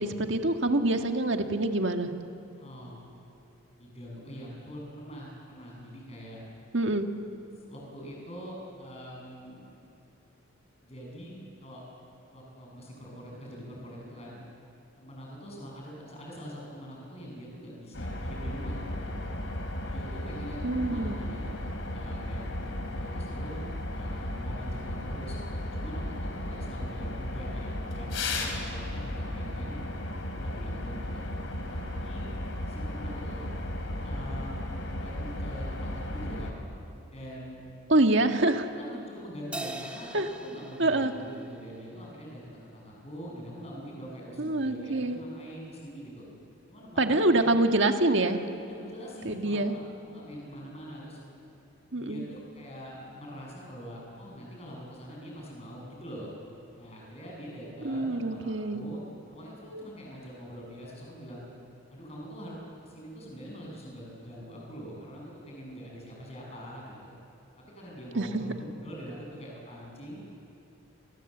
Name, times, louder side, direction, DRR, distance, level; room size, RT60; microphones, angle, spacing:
voice 1, 0.0-2.1 6.7-7.1 20.6-21.2 37.9-38.7 40.1-40.3 40.8-41.1 44.4-45.2 47.0-48.4 49.3-49.8 51.9-52.3 57.8-58.8 68.2-68.5, right 2 dB, 60° right, 5 dB, 1.8 m, -25 dB
voice 2, 2.6-3.1 3.8-6.4 7.6-9.8 10.8-11.8 12.3-14.4 15.0-19.2 19.9-23.6 23.9-29.8 30.4-31.2 31.7-32.3 32.7-33.5 34.0-34.7 35.0-36.5 37.1-37.6 38.7-46.2 46.7-47.5 48.7-51.2 51.9-56.3 56.8-59.0 59.3-61.4 61.9-67.1 67.6-70.3, equal, 30° left, -2 dB, 7.7 m, -44 dB
sound 1, 17.9-36.5, left 1 dB, 60° left, 3.4 m, -35 dB
Crash cymbal, 39.5-42.2, right 1 dB, 5° right, 1.6 m, -42 dB
29.5 x 22.5 x 8.1 m, 2.8 s
head